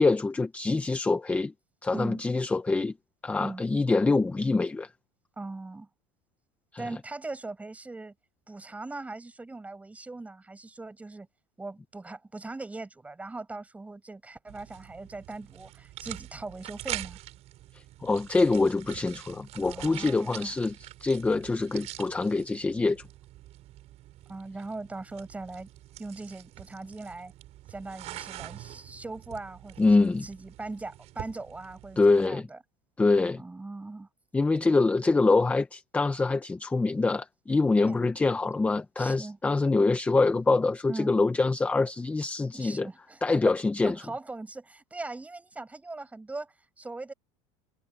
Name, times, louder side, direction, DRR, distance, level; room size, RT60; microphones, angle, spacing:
voice 1, 0.0-1.5 1.8-2.9 3.2-4.9 6.7-6.8 17.7-23.0 29.8-30.3 32.0-32.5 33.0-33.4 34.3-42.9 43.2-43.9, left 3 dB, 10° left, 0.7 m, -25 dB
voice 2, 1.9-2.2 3.4-3.6 5.4-5.9 6.8-8.1 8.5-11.3 11.6-17.2 19.6-20.6 24.3-25.7 26.0-27.3 27.7-32.6 33.4-34.1 37.8-38.1 39.0-39.4 40.9-41.1 42.5-43.6 43.8-47.1, right 3 dB, 10° right, 7.2 m, -40 dB
sound 1, 14.5-32.3, right 15 dB, 45° right, 7.7 m, -45 dB
supercardioid pair, 145°, 15 cm